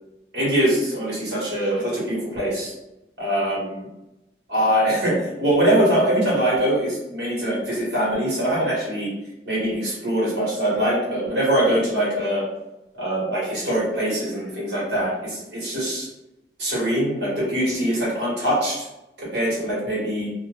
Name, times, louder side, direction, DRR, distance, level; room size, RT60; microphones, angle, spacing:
voice 1, 0.3-2.7 3.2-3.9 4.5-9.1 9.5-12.4 13.0-16.1 16.6-18.9 19.3-20.3, right 1 dB, 70° right, -6 dB, 1.3 m, -23 dB
2.5 x 2.2 x 3.1 m, 0.94 s
head